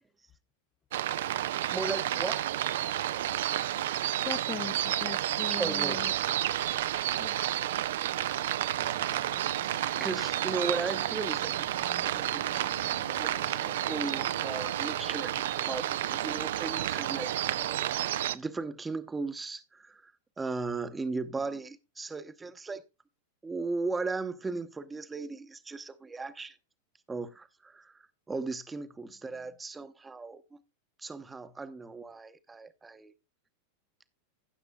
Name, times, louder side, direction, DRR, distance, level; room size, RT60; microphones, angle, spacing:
sound 1, 0.9-18.3, right 12 dB, 55° right, 0.5 m, -31 dB
voice 1, 1.7-2.4 5.5-6.1 9.7-12.7 13.0-17.9 18.3-20.1 20.4-22.8 23.4-26.6 27.1-30.6 31.0-33.1, right 3 dB, 10° right, 0.9 m, -37 dB
voice 2, 4.2-6.1 7.2-7.4, left 8 dB, 25° left, 0.6 m, -39 dB
sound 2, 7.8-15.9, left 4 dB, 70° left, 1.7 m, -52 dB
16.5 x 7.2 x 2.3 m
figure-of-eight pair, 90°, 0 cm